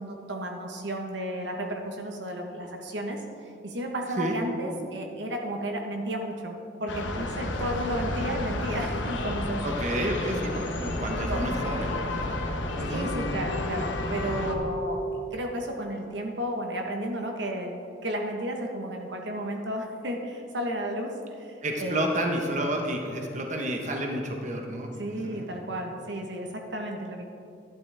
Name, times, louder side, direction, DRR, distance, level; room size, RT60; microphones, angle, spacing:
voice 1, 0.0-3.2 3.6-6.5 6.8-9.6 10.3-11.0 11.3-11.4 11.9-12.0 12.9-15.0 15.3-17.7 18.0-22.3 25.0-27.2, equal, 70° right, 2 dB, 1.1 m, -33 dB
sound 1, 6.9-14.5, left 1 dB, 85° left, 1.1 m, -31 dB
voice 2, 9.6-13.1 21.6-25.5, right 1 dB, 40° right, 1 dB, 1.1 m, -31 dB
12.0 x 11.5 x 3.4 m, 2.6 s
head